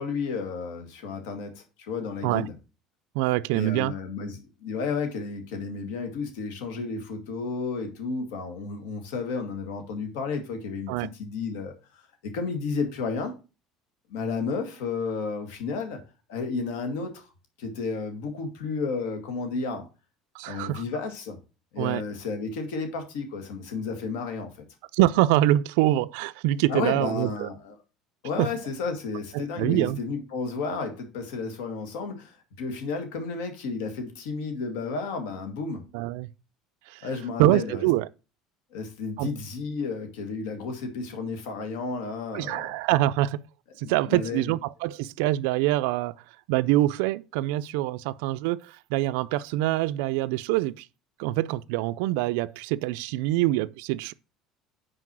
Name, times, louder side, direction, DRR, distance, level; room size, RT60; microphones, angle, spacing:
voice 1, 0.0-2.5 3.5-13.3 14.1-16.0 16.3-17.2 17.6-19.9 20.5-21.4 21.7-24.6 26.7-27.8 28.2-35.9 37.0-37.9 38.7-42.8 43.8-44.5, left 4 dB, 90° left, 1.9 m, -32 dB
voice 2, 3.2-3.9 10.9-11.1 20.3-20.8 21.8-22.0 24.9-27.5 28.4-28.5 29.3-30.0 35.9-36.3 36.9-37.1 37.4-38.1 39.2-39.3 42.3-43.4 43.8-46.1 46.5-50.8 51.2-54.1, right 15 dB, 85° right, 0.3 m, -25 dB
6.0 x 4.8 x 6.0 m
cardioid pair, 155°, 0 cm